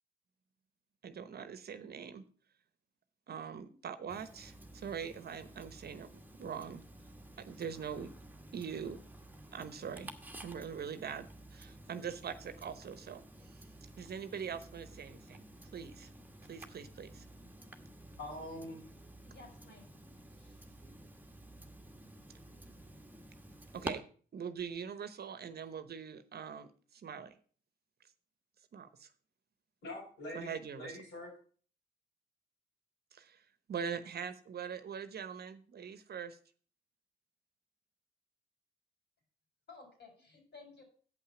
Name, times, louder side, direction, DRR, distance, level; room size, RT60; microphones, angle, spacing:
voice 1, 1.0-2.2 3.3-6.1 6.4-6.8 7.4-8.1 8.5-9.0 9.5-10.1 10.4-13.6 14.0-15.4 15.7-16.1 16.5-17.3 23.7-24.0 24.3-27.3 28.7-29.1 30.3-31.0 33.1-36.4, right 7 dB, 55° right, 12 dB, 1.0 m, -43 dB
Tick-tock, 4.1-23.9, right 1 dB, 10° right, 1.4 m, -51 dB
voice 2, 18.1-18.8 20.4-20.5 29.8-31.3, left 1 dB, 75° left, -7 dB, 5.1 m, -44 dB
voice 3, 19.2-19.8 39.7-40.8, left 3 dB, 60° left, 2 dB, 4.6 m, -55 dB
8.1 x 5.7 x 6.9 m, 0.44 s
hypercardioid pair, 45°, 20 cm